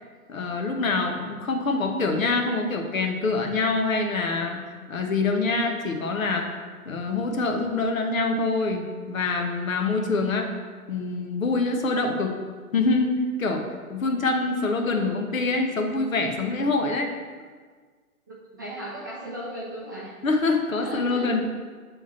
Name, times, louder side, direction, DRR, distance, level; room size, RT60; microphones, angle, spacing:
voice 1, 0.3-4.6 4.9-6.6 6.8-10.5 10.9-12.3 12.7-13.6 13.9-17.1 20.2-21.4, left 3 dB, 65° left, 3 dB, 1.1 m, -25 dB
voice 2, 18.3-20.1 20.8-21.4, right 1 dB, 15° right, -7 dB, 0.4 m, -37 dB
7.2 x 3.5 x 4.3 m, 1.5 s
figure-of-eight pair, 120°, 44 cm